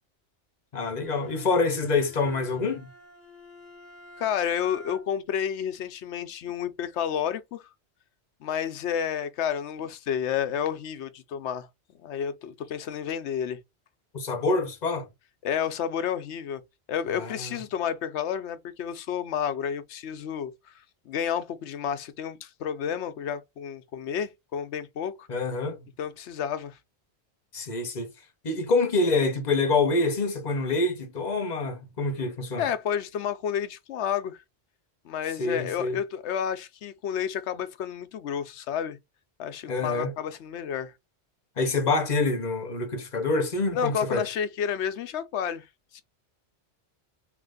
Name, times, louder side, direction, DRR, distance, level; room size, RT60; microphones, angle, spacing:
voice 1, 0.7-2.9 14.1-15.1 17.2-17.6 25.3-25.9 27.5-28.1 28.4-32.6 35.4-36.0 39.7-40.1 41.6-44.3, left 3 dB, 40° left, 1.0 m, -26 dB
Bowed string instrument, 1.0-5.3, left 2 dB, 45° right, 1.9 m, -49 dB
voice 2, 4.2-7.7 8.4-11.7 11.9-13.6 15.4-16.6 16.9-20.7 21.1-25.3 26.0-26.8 32.6-34.4 35.0-39.0 39.4-40.9 43.7-45.7 45.9-46.0, left 8 dB, 85° left, 0.9 m, -30 dB
3.3 x 2.9 x 3.8 m
omnidirectional pair, 1.1 m